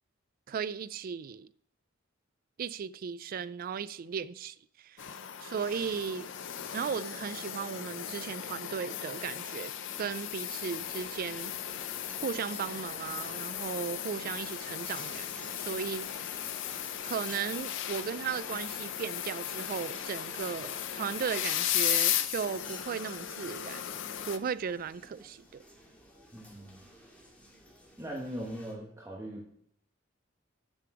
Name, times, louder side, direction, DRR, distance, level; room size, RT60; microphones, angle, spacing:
voice 1, 0.5-1.5 2.6-5.1 5.4-6.3 6.7-11.6 12.2-16.5 17.0-23.8 24.3-25.6, right 6 dB, 45° right, 0.3 m, -36 dB
sound 1, 5.0-24.4, left 11 dB, 65° left, 0.6 m, -36 dB
sound 2, 10.7-28.7, equal, 5° left, 2.2 m, -53 dB
voice 2, 26.3-26.8 28.0-29.5, equal, 15° right, 1.2 m, -40 dB
7.8 x 6.8 x 4.8 m
head